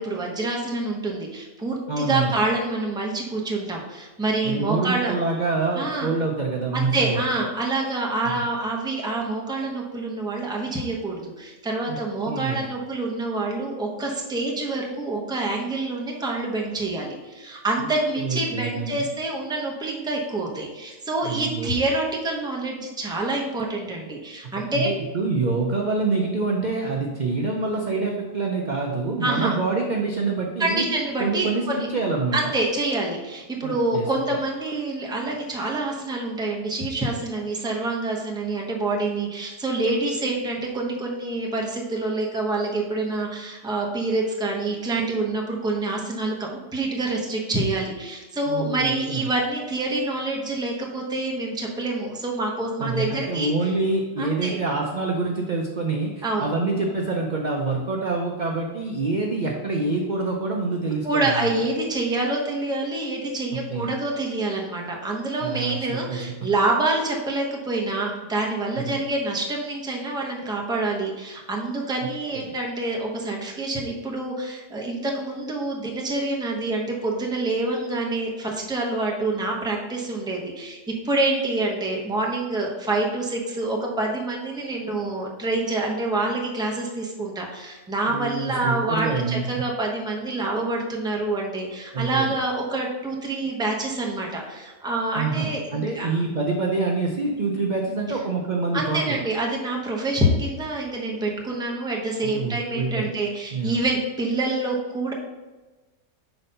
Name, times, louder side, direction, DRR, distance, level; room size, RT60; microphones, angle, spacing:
voice 1, 0.0-5.1 5.8-6.1 6.7-24.9 29.2-29.6 30.6-31.9 32.3-53.5 54.2-54.6 56.2-56.5 61.0-96.2 98.7-105.1, right 2 dB, 5° right, -1 dB, 0.6 m, -27 dB
voice 2, 1.9-2.4 4.4-7.2 8.3-8.4 11.9-12.0 12.3-12.7 17.8-17.9 18.2-19.0 21.2-21.8 24.7-30.8 31.2-32.4 33.6-34.1 48.5-49.3 52.8-61.5 63.5-63.9 65.4-66.5 68.8-69.0 72.3-72.5 88.1-89.4 91.9-92.3 95.1-99.2 102.2-103.1 103.5-103.8, right 3 dB, 55° right, 0 dB, 0.5 m, -26 dB
5.8 x 4.0 x 5.4 m, 1.2 s
omnidirectional pair, 1.7 m